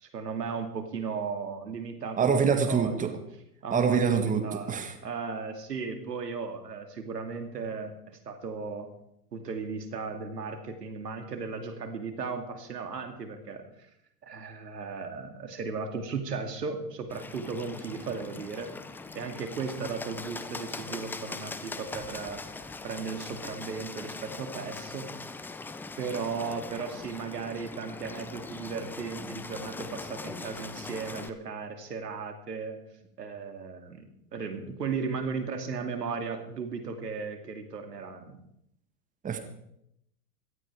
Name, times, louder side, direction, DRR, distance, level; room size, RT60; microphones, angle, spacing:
voice 1, 0.0-3.2 3.6-8.9 9.3-13.6 14.2-18.7 19.1-22.4 22.8-25.1 26.0-32.8 33.2-34.0 34.3-38.4, right 5 dB, 80° right, 7 dB, 2.7 m, -36 dB
voice 2, 2.2-3.1 3.7-4.4 4.7-4.9 39.2-39.4, right 6 dB, 15° right, 7 dB, 1.7 m, -25 dB
Bird, 17.1-31.3, left 3 dB, 5° left, 0.4 m, -41 dB
17.5 x 13.0 x 4.8 m, 0.78 s
hypercardioid pair, 110°, 47 cm